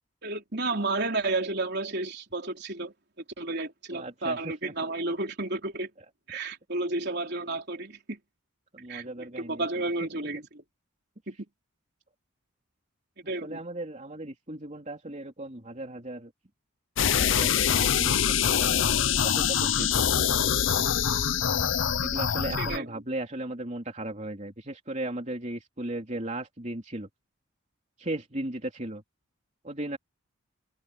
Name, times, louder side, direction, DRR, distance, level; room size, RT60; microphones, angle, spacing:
voice 1, 0.2-2.9 3.4-5.9 6.3-8.2 8.9-10.6 11.3-11.4 13.3-13.6 22.6-22.9, right 2 dB, 50° right, 4.0 m, -32 dB
voice 2, 3.9-4.7 8.7-9.7 10.2-10.3 13.2-16.3 17.2-18.8 19.2-20.0 21.1-21.2 22.0-27.1 28.0-29.0 29.6-30.0, right 1 dB, 35° right, 3.4 m, -36 dB
sound 1, 17.0-22.8, left 8 dB, 60° left, 0.6 m, -24 dB
open air
head